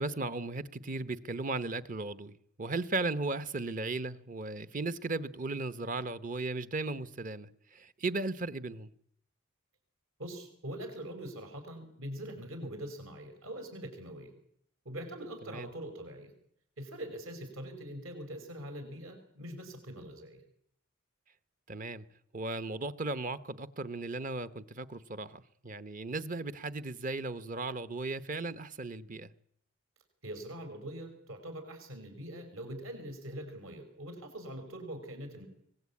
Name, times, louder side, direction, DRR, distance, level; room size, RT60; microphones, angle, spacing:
voice 1, 0.0-8.9 15.4-15.7 21.7-22.0 22.3-29.3, right 3 dB, 40° right, 0.9 m, -36 dB
voice 2, 10.2-14.3 14.9-16.3 16.8-20.4 30.2-35.5, right 1 dB, 70° right, 5.3 m, -43 dB
24.5 x 19.5 x 8.6 m
head